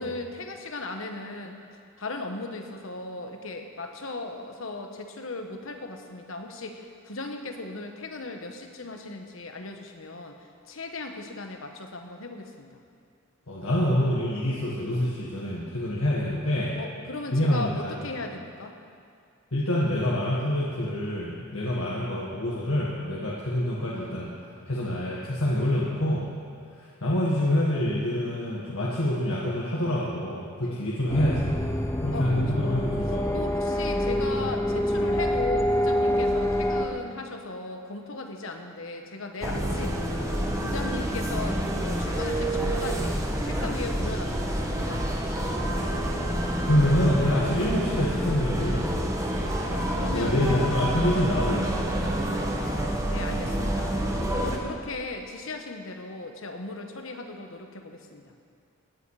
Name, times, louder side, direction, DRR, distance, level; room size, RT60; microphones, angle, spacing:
voice 1, 0.0-1.6 2.0-10.4 10.7-12.8 16.8-18.7 30.6-30.8 32.1-32.5 33.3-40.0 40.6-45.1 49.6-50.7 52.5-54.0 54.3-58.3, left 3 dB, 70° left, 4 dB, 1.3 m, -37 dB
voice 2, 13.5-16.8 17.3-17.9 19.5-24.3 24.7-26.3 26.8-31.7 32.0-33.3 46.7-49.0 50.1-52.0, left 1 dB, 90° left, -6 dB, 1.8 m, -26 dB
sound 1, 31.1-36.9, equal, 15° left, 0.8 m, -26 dB
sound 2, 39.4-54.6, right 1 dB, 15° right, 1.3 m, -28 dB
17.5 x 10.0 x 4.9 m, 2.3 s
head